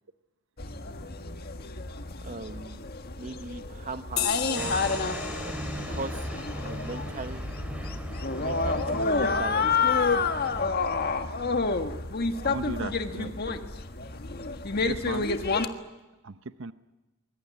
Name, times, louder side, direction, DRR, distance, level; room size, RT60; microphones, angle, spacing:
sound 1, 0.6-15.7, left 4 dB, 50° left, 1.6 m, -29 dB
voice 1, 2.2-2.9 3.1-4.8 5.9-6.2 6.6-7.5 8.4-9.9, right 3 dB, 40° right, 11 dB, 1.0 m, -39 dB
sound 2, 4.2-9.1, left 10 dB, 85° left, 2.7 m, -37 dB
sound 3, 4.6-10.7, equal, 5° right, 3.4 m, -38 dB
voice 2, 12.4-13.3 14.8-15.3 16.2-16.7, right 3 dB, 65° right, 12 dB, 0.8 m, -36 dB
25.0 x 21.5 x 9.8 m, 1.1 s
head